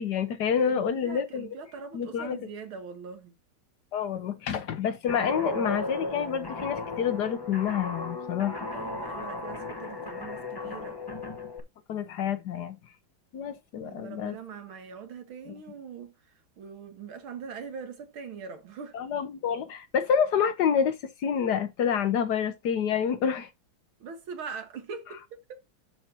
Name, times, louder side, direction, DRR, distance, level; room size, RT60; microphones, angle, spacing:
voice 1, 0.0-1.5 1.9-2.4 3.9-8.7 11.9-12.8 13.3-14.3 18.9-23.5, left 7 dB, 65° left, 1.2 m, -28 dB
voice 2, 0.6-3.4 8.7-11.0 13.8-19.0 24.0-25.6, right 6 dB, 85° right, 2.4 m, -42 dB
Guitar, 5.1-11.6, left 2 dB, 20° left, 0.6 m, -35 dB
12.5 x 4.6 x 2.8 m
omnidirectional pair, 2.2 m